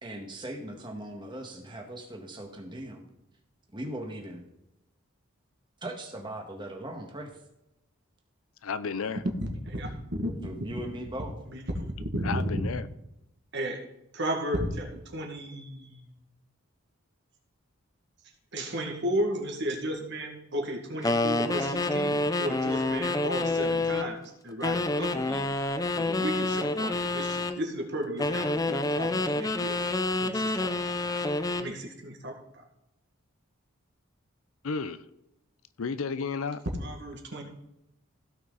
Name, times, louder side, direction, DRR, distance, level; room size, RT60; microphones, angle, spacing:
voice 1, 0.0-3.0 3.7-4.4 5.8-7.3 10.4-11.4, right 1 dB, 20° right, 1.7 m, -39 dB
voice 2, 8.6-9.2 12.2-12.9 34.6-35.0 35.8-36.6, left 5 dB, 70° left, 0.6 m, -32 dB
voice 3, 9.7-10.3 11.5-12.4 13.5-13.8 14.1-16.1 18.5-25.5 26.0-29.8 30.2-31.0 31.6-32.6 36.8-37.4, right 1 dB, 55° right, 2.0 m, -34 dB
sound 1, 21.0-24.1 24.6-27.6 28.2-31.7, left 2 dB, 15° left, 0.5 m, -28 dB
16.0 x 6.0 x 4.1 m
head